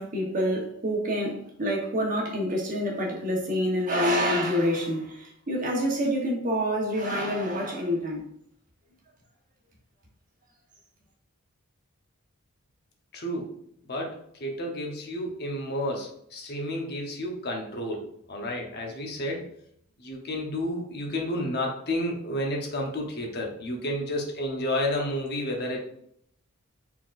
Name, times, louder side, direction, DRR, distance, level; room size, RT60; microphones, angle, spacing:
voice 1, 0.0-8.2, equal, 35° right, 1.0 m, -27 dB
voice 2, 13.1-13.5 13.8-19.5 20.0-25.8, left 1 dB, 45° left, 0.9 m, -31 dB
4.4 x 3.9 x 2.5 m
head